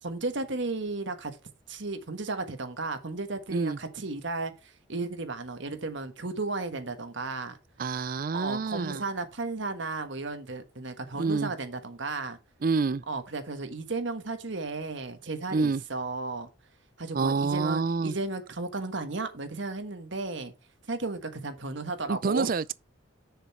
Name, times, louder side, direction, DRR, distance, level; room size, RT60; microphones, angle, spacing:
voice 1, 0.0-1.4 1.7-7.6 8.3-12.4 13.1-16.5 17.0-20.5 20.9-22.5, right 3 dB, 65° right, 1.4 m, -34 dB
voice 2, 7.8-9.0 11.2-11.5 12.6-13.0 15.5-15.8 17.1-18.1 22.1-22.7, right 4 dB, 45° right, 0.4 m, -27 dB
7.0 x 6.7 x 4.3 m
head